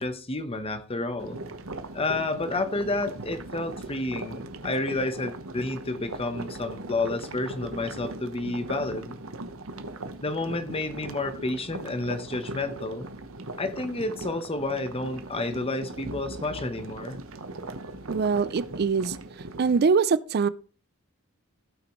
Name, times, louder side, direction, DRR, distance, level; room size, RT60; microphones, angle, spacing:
voice 1, 0.0-1.4 1.9-9.2 10.2-13.1 13.6-17.2, left 2 dB, 30° left, 1.1 m, -30 dB
sound 1, 1.2-19.8, right 2 dB, 80° right, 1.1 m, -39 dB
voice 2, 18.1-19.2 19.6-20.5, right 5 dB, 50° right, 0.4 m, -23 dB
16.0 x 6.0 x 3.1 m
head